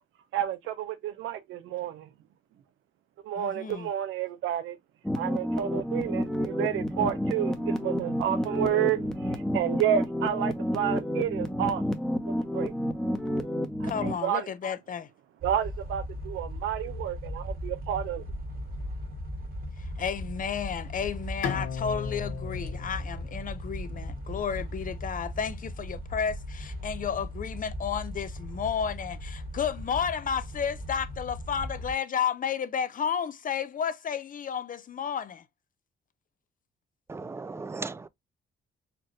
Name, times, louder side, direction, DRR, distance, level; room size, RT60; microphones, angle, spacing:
voice 1, 0.3-2.1 3.2-4.8 5.2-12.8 13.8-14.5 15.4-18.2, right 10 dB, 85° right, 0.8 m, -30 dB
voice 2, 3.4-3.9 13.8-15.1 19.8-35.4, left 7 dB, 45° left, 0.6 m, -32 dB
sound 1, 5.0-14.1, equal, 5° left, 0.9 m, -30 dB
sound 2, 15.4-31.9, equal, 45° right, 1.4 m, -38 dB
Bowed string instrument, 21.4-24.7, left 7 dB, 80° left, 1.2 m, -37 dB
voice 3, 37.1-38.1, right 3 dB, 15° right, 0.4 m, -37 dB
4.4 x 2.6 x 3.1 m
cardioid pair, 90°, 20 cm